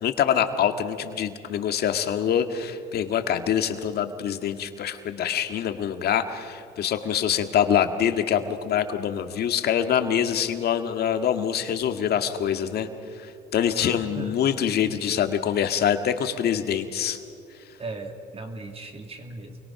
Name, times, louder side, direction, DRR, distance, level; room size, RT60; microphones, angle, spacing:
voice 1, 0.0-12.9 13.2-17.2, left 9 dB, 60° left, 7 dB, 1.9 m, -25 dB
voice 2, 13.8-14.3 17.8-19.6, right 3 dB, 30° right, 5 dB, 2.5 m, -37 dB
28.5 x 22.5 x 5.9 m, 2.4 s
supercardioid pair, 90°, 19 cm